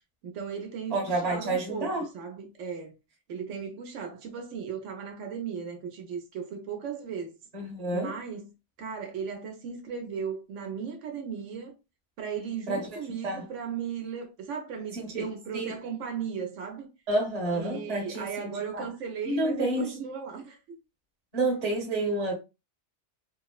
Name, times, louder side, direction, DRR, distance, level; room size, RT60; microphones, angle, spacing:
voice 1, 0.2-2.9 3.3-7.4 7.9-8.5 8.8-11.7 12.2-16.9 17.5-20.6, right 6 dB, 85° right, 1.0 m, -36 dB
voice 2, 0.9-2.1 7.5-8.2 12.7-12.9 13.2-13.5 14.9-15.8 17.1-18.9 19.2-19.9 21.3-22.3, right 2 dB, 40° right, 0.8 m, -29 dB
3.0 x 2.0 x 2.3 m
omnidirectional pair, 1.2 m